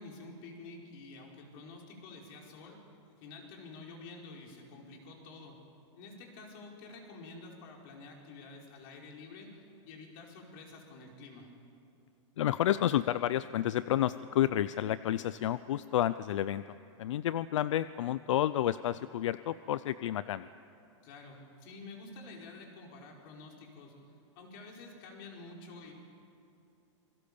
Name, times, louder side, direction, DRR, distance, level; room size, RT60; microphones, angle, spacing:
voice 1, 0.0-5.5 5.9-9.6 9.8-11.5 21.0-23.9 24.3-25.9, left 3 dB, 45° left, 0 dB, 5.0 m, -49 dB
voice 2, 12.4-20.5, left 12 dB, 75° left, 15 dB, 0.6 m, -30 dB
28.0 x 23.0 x 7.0 m, 2.7 s
supercardioid pair, 160°, 16 cm